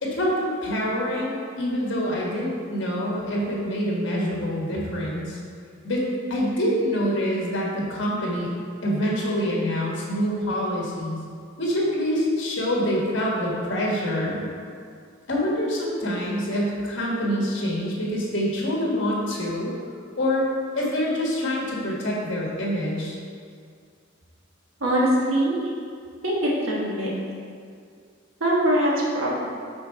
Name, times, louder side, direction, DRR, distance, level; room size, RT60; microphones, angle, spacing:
voice 1, 0.0-5.4 5.8-8.5 8.8-11.2 11.6-14.4 15.3-19.7 20.2-20.5 20.7-23.2, equal, 60° left, -4 dB, 1.5 m, -26 dB
voice 2, 24.8-25.6 26.2-27.1 28.4-29.4, right 1 dB, 85° right, -5 dB, 1.3 m, -22 dB
6.3 x 3.9 x 4.5 m, 2.2 s
head